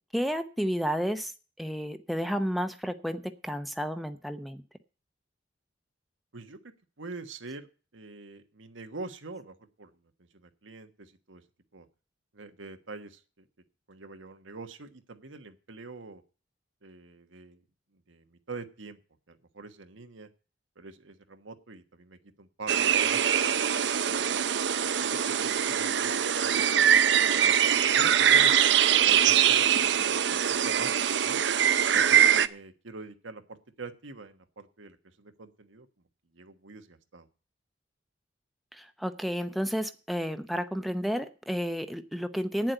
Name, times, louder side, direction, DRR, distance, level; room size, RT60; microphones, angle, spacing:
voice 1, 0.1-1.3 1.6-4.6 38.7-42.7, equal, ahead, 8 dB, 0.7 m, -31 dB
voice 2, 7.0-7.7 7.9-9.9 10.3-11.4 11.7-11.9 12.3-13.5 13.9-16.2 16.8-17.6 17.9-19.0 19.3-20.3 20.8-23.4 24.1-24.5 24.9-25.0 25.3-27.1 27.4-27.5 27.8-28.6 29.0-30.4 30.6-31.4 31.9-35.9 36.3-37.3, right 3 dB, 90° right, 7 dB, 1.3 m, -44 dB
sound 1, 22.7-32.5, right 9 dB, 65° right, 0.6 m, -23 dB
9.4 x 7.5 x 9.1 m, 0.36 s
head